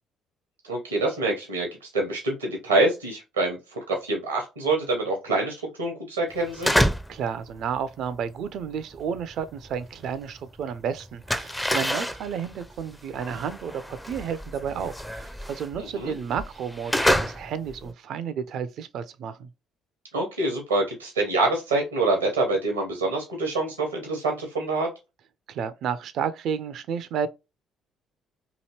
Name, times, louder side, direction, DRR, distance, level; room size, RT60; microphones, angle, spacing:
voice 1, 0.6-6.8 15.8-16.2 20.1-24.9, right 2 dB, 90° right, 0.8 m, -26 dB
sound 1, 6.4-7.3 7.5-10.5 10.7-17.9, equal, 10° left, 0.4 m, -28 dB
voice 2, 7.1-19.5 25.5-27.3, right 7 dB, 60° right, 0.4 m, -31 dB
2.9 x 2.7 x 2.8 m
hypercardioid pair, 50°, 0 cm